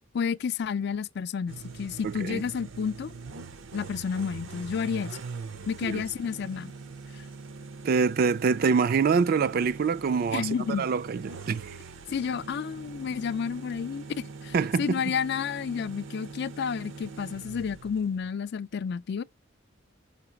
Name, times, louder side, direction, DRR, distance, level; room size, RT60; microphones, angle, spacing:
voice 1, 0.1-3.1 3.7-5.2 5.7-6.7 7.1-7.2 10.3-10.9 12.1-19.2, left 6 dB, 60° left, 0.4 m, -31 dB
sound 1, 1.5-18.3, right 4 dB, 75° right, 0.7 m, -43 dB
voice 2, 2.0-2.4 5.8-6.0 7.8-10.5 10.8-11.7 14.5-15.0, right 5 dB, 50° right, 0.4 m, -25 dB
5.9 x 3.8 x 6.1 m
head